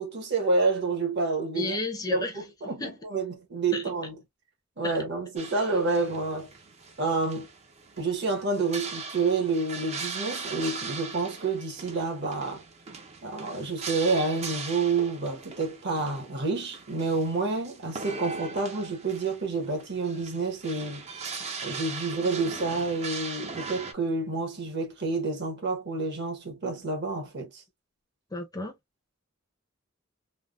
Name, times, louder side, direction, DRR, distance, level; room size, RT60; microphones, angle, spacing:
voice 1, 0.0-1.8 2.1-4.2 4.8-6.5 7.0-7.5 8.0-12.6 13.2-21.1 21.6-27.6, right 3 dB, 55° right, 1.0 m, -29 dB
voice 2, 1.5-2.4 2.8-3.0 3.7-3.8 4.8-4.9 28.3-28.7, left 3 dB, 20° left, 0.6 m, -32 dB
sound 1, 5.4-23.9, right 4 dB, 30° right, 0.5 m, -40 dB
3.4 x 2.1 x 2.3 m
head